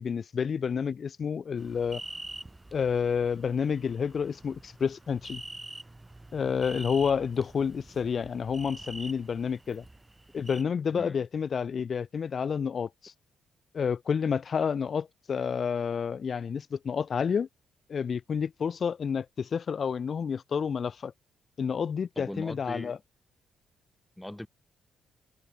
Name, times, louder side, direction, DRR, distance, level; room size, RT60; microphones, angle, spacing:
voice 1, 0.0-2.0 2.7-5.4 6.3-9.8 10.3-13.1 13.7-17.5 17.9-21.1 21.6-23.0, left 6 dB, 45° left, 1.2 m, -29 dB
sound 1, 1.6-10.6, right 2 dB, 15° right, 4.1 m, -46 dB
voice 2, 22.2-23.0 24.2-24.5, left 1 dB, 5° left, 1.4 m, -39 dB
cardioid pair, 90°, 0 cm